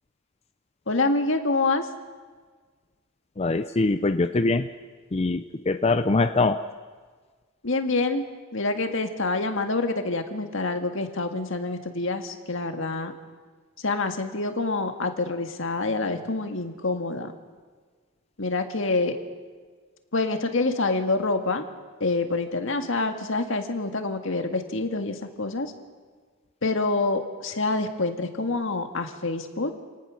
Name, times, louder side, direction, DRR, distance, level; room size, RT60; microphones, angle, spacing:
voice 1, 0.9-1.9 7.6-13.1 13.8-17.3 18.4-19.2 20.1-21.6 22.0-25.7 26.6-29.7, left 3 dB, 65° left, 6 dB, 1.9 m, -26 dB
voice 2, 3.4-4.7 5.1-6.6, left 3 dB, 30° left, 9 dB, 0.5 m, -23 dB
28.5 x 18.0 x 6.4 m, 1.5 s
head